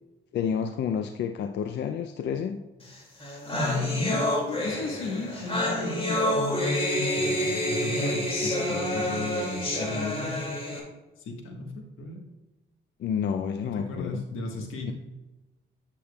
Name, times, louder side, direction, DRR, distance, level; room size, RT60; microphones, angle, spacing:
voice 1, 0.3-2.6 13.0-14.2 14.8-14.9, left 7 dB, 60° left, 8 dB, 0.5 m, -29 dB
sound 1, 2.9-3.0 3.2-10.8, left 1 dB, 30° left, 2.3 m, -28 dB
voice 2, 3.5-10.4 11.2-12.2 13.6-14.9, left 3 dB, 90° left, 2 dB, 1.4 m, -34 dB
8.7 x 7.2 x 2.3 m, 1.1 s
cardioid pair, 90°, 20 cm